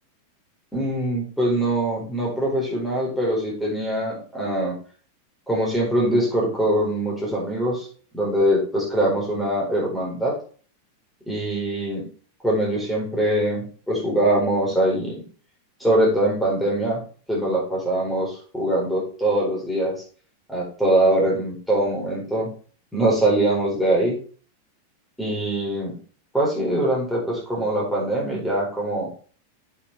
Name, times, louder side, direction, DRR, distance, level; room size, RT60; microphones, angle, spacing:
voice 1, 0.7-4.7 5.5-7.9 8.1-10.4 11.3-12.0 12.4-15.2 15.8-17.0 17.3-19.9 20.5-22.5 22.9-24.2 25.2-25.9 26.3-29.1, right 1 dB, 5° left, -5 dB, 4.5 m, -23 dB
8.2 x 6.2 x 3.5 m, 0.41 s
figure-of-eight pair, 90°, 0 cm